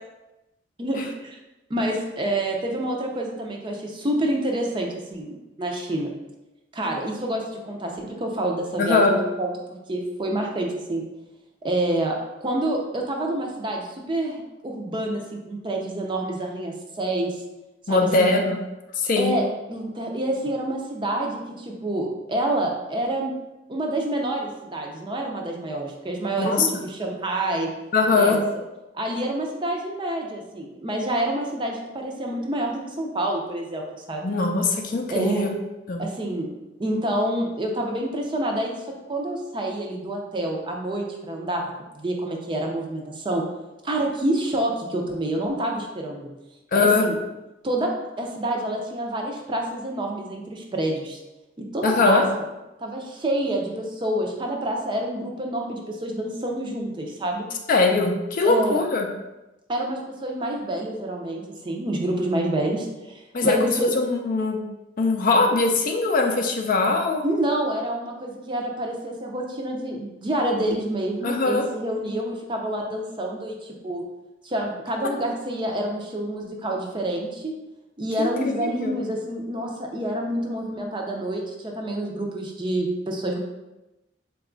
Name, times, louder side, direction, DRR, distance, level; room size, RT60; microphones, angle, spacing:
voice 1, 0.8-1.4 1.7-6.1 6.7-9.5 9.9-11.0 11.6-17.4 17.9-18.4 19.2-23.3 23.7-27.7 28.1-28.4 28.9-34.3 35.1-35.4 36.0-36.5 36.8-38.8 39.1-41.6 41.9-43.4 43.8-46.3 46.7-47.2 47.6-47.9 48.2-51.2 51.6-52.4 52.8-57.5 58.4-58.8 59.7-63.9 67.2-74.0 74.4-77.5 78.0-83.4, right 1 dB, 25° right, 1 dB, 0.5 m, -27 dB
voice 2, 8.8-9.1 17.9-18.6 19.0-19.4 26.4-26.7 27.9-28.4 34.2-35.5 35.9-36.0 46.7-47.0 51.8-52.2 57.7-59.1 63.3-64.6 65.0-67.2 71.2-71.6 78.2-79.0, left 3 dB, 45° left, 3 dB, 0.4 m, -21 dB
3.9 x 2.3 x 3.8 m, 1.0 s
head